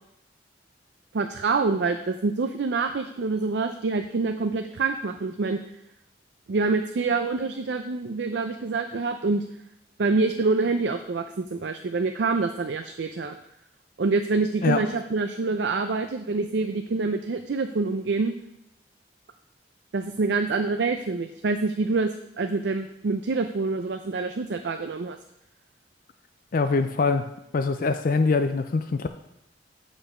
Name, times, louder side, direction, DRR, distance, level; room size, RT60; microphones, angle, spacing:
voice 1, 1.1-5.6 6.5-9.4 10.0-13.4 14.0-18.3 19.9-22.1 22.4-25.2, right 3 dB, 70° right, 6 dB, 0.5 m, -26 dB
voice 2, 26.5-27.3 27.5-29.1, left 4 dB, 50° left, 9 dB, 0.4 m, -23 dB
8.4 x 5.3 x 4.9 m, 0.82 s
head